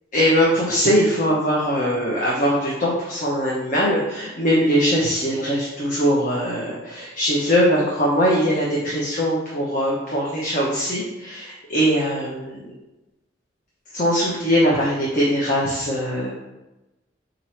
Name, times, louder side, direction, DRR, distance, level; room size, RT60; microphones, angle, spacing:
voice 1, 0.1-12.7 13.9-16.3, equal, 45° left, -5 dB, 0.8 m, -21 dB
4.4 x 2.6 x 4.3 m, 1.0 s
head